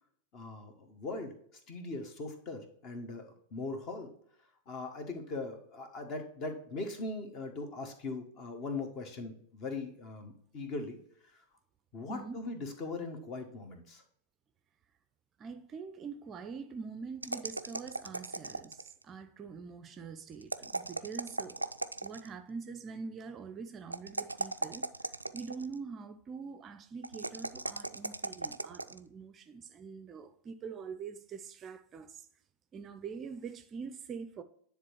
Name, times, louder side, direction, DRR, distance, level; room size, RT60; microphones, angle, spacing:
voice 1, 0.3-1.3 1.7-4.1 4.7-11.0 11.9-14.0, left 3 dB, 35° left, 1.4 m, -40 dB
voice 2, 12.1-12.4 15.4-21.7 22.0-32.3 32.7-34.4, right 5 dB, 25° right, 0.5 m, -44 dB
sound 1, 17.2-19.0 20.4-22.3 23.9-25.7 27.0-29.0, right 2 dB, 85° right, 0.3 m, -38 dB
9.8 x 3.6 x 4.6 m
figure-of-eight pair, 90°, 0 cm